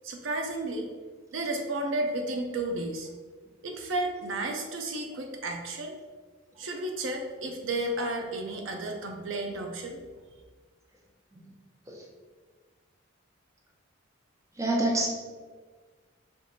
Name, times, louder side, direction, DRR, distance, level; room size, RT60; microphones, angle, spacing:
voice 1, 0.0-0.9 1.3-3.1 3.6-5.9 6.6-10.0, right 2 dB, 65° right, 3 dB, 0.5 m, -32 dB
voice 2, 14.6-15.1, right 1 dB, 15° right, -2 dB, 0.6 m, -25 dB
4.4 x 2.4 x 4.0 m, 1.5 s
head